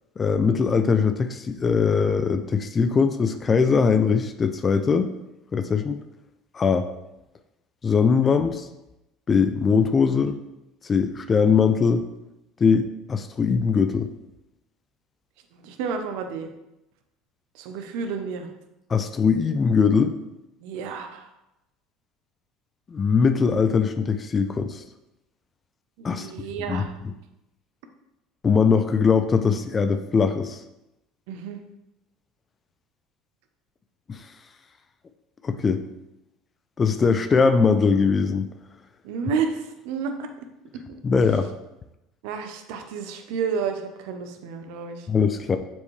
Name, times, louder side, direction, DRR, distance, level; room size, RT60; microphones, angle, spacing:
voice 1, 0.2-5.1 5.5-6.0 6.5-6.9 7.8-8.7 9.3-10.4 10.8-12.1 12.6-14.1 18.9-20.1 22.9-24.8 26.0-26.3 26.7-26.8 28.4-30.6 34.1-34.3 35.4-35.8 36.8-38.5 41.0-41.5 45.1-45.6, left 5 dB, 30° left, 8 dB, 0.5 m, -21 dB
voice 2, 15.5-16.5 17.5-18.5 20.6-21.3 26.0-26.9 31.3-31.6 39.0-40.3 42.2-45.1, right 6 dB, 70° right, 6 dB, 0.8 m, -31 dB
6.9 x 4.5 x 3.3 m, 0.91 s
hypercardioid pair, 75°, 0 cm